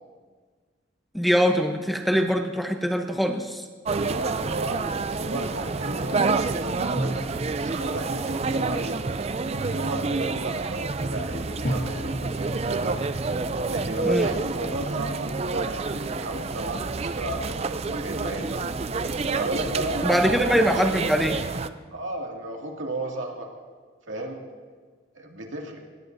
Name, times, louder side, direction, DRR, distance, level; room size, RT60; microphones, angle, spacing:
voice 1, 1.1-3.6 14.0-14.3 20.0-21.4, equal, ahead, 4 dB, 0.8 m, -23 dB
sound 1, 3.8-21.7, right 3 dB, 30° right, 0.4 m, -28 dB
voice 2, 3.9-7.2 7.6-9.0 9.5-13.0 13.7-18.6 19.3-20.2 20.5-20.8 21.9-23.5 24.1-24.4 25.1-25.8, right 1 dB, 85° right, 0 dB, 2.3 m, -33 dB
sound 2, 6.9-9.3 11.6-14.5, equal, 45° left, 1.7 m, -37 dB
21.0 x 19.0 x 2.7 m, 1.5 s
head